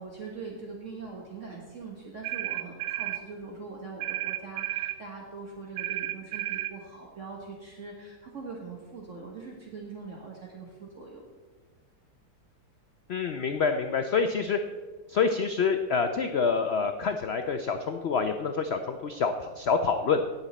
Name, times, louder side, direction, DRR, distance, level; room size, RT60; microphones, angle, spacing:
voice 1, 0.0-11.2, right 4 dB, 50° right, -1 dB, 1.5 m, -42 dB
sound 1, 2.2-3.2 4.0-5.0 5.8-6.8, right 15 dB, 85° right, 1.2 m, -32 dB
voice 2, 13.1-14.6 15.1-20.2, left 5 dB, 85° left, 7 dB, 0.5 m, -27 dB
18.0 x 7.1 x 4.1 m, 1.4 s
omnidirectional pair, 1.8 m